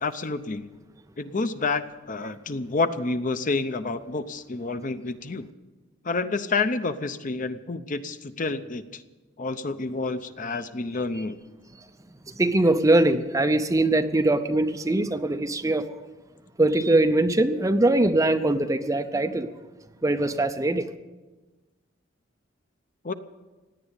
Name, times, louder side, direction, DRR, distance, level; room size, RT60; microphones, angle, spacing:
voice 1, 0.0-0.7 1.2-5.5 6.0-9.0 9.4-11.4 23.0-23.1, left 3 dB, 40° left, 11 dB, 0.7 m, -29 dB
voice 2, 12.4-15.9 16.6-19.5 20.0-20.8, right 2 dB, 15° right, 8 dB, 0.6 m, -22 dB
17.0 x 10.0 x 8.1 m, 1.2 s
head